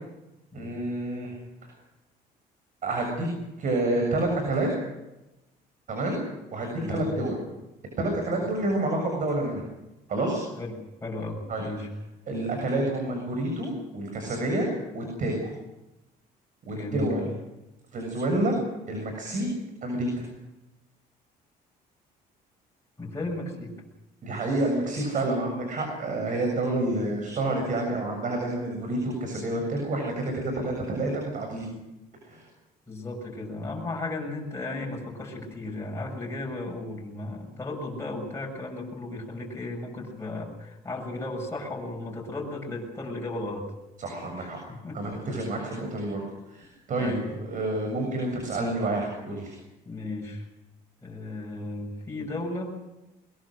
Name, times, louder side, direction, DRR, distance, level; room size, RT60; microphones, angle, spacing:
voice 1, 0.5-1.4 2.8-3.3 3.6-4.7 5.9-6.2 6.5-7.4 8.0-9.6 10.1-10.4 11.5-11.6 12.3-15.5 16.7-17.3 17.9-18.6 18.9-19.5 19.8-20.3 24.2-31.7 32.2-32.4 44.0-44.6 44.9-49.6, right 2 dB, 50° right, 2 dB, 7.1 m, -28 dB
voice 2, 6.8-7.1 10.6-11.9 16.7-17.1 23.0-23.8 27.0-27.2 32.9-43.7 44.4-45.3 45.6-45.8 47.0-47.2 49.9-50.5 51.0-52.8, left 2 dB, 15° left, -1 dB, 7.0 m, -35 dB
22.0 x 22.0 x 6.4 m, 0.97 s
cardioid pair, 110°, 17 cm